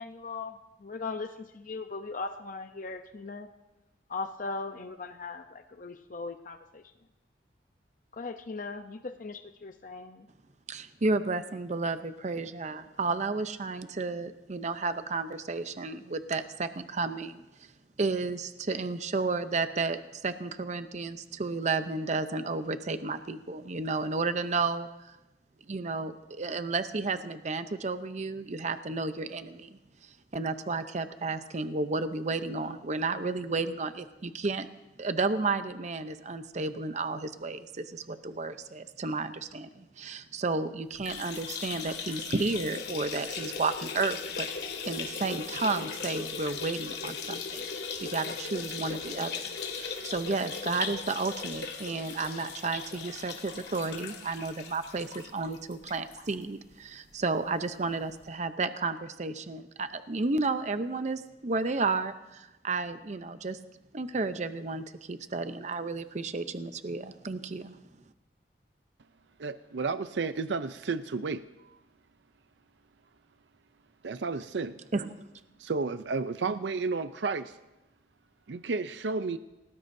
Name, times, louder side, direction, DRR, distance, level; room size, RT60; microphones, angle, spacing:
voice 1, 0.0-3.5 4.1-6.8 8.1-10.3, left 3 dB, 50° left, 7 dB, 0.7 m, -39 dB
voice 2, 10.7-17.4 18.0-25.2 25.7-29.8 30.3-34.7 35.0-44.5 44.9-47.7 48.0-49.3 49.8-63.6 63.9-67.8 74.9-75.3, right 3 dB, 40° right, 10 dB, 0.7 m, -32 dB
sound 1, 40.9-56.3 56.7-56.8 57.1-57.2 58.2-58.3, left 5 dB, 65° left, 2.1 m, -38 dB
voice 3, 69.4-71.8 74.0-74.8 75.6-77.6 78.5-79.4, right 4 dB, 85° right, 12 dB, 0.5 m, -32 dB
29.5 x 18.5 x 2.7 m, 1.0 s
head